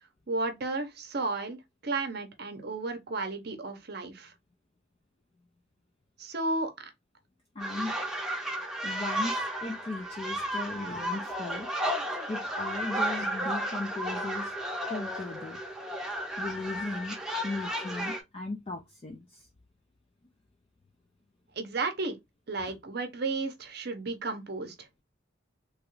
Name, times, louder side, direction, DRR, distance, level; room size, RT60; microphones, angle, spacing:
voice 1, 0.3-4.3 6.2-6.7 21.6-22.2 22.5-24.7, right 3 dB, 55° right, 0.7 m, -33 dB
voice 2, 7.6-8.0 8.8-11.7 12.0-14.5 14.9-15.6 16.4-19.5 22.7-22.8, left 2 dB, 30° left, 0.4 m, -37 dB
sound 1, 7.6-18.2, right 1 dB, 5° right, 0.7 m, -33 dB
3.0 x 2.3 x 3.0 m
head